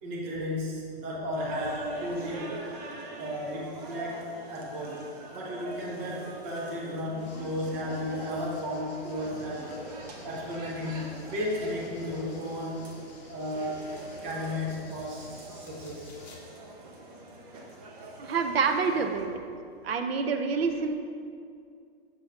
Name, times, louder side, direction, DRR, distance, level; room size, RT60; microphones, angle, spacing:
voice 1, 0.0-2.5 3.2-4.2 4.5-9.7 10.2-12.9 13.3-13.8 14.2-16.1, left 1 dB, 10° right, -4 dB, 0.4 m, -34 dB
sound 1, 1.4-19.3, right 2 dB, 35° right, 1.1 m, -43 dB
sound 2, 7.2-16.4, left 3 dB, 40° left, 1.4 m, -51 dB
voice 2, 18.2-19.3 19.8-21.0, right 5 dB, 65° right, 6 dB, 0.8 m, -27 dB
7.4 x 6.8 x 3.6 m, 2.3 s
hypercardioid pair, 170°, 32 cm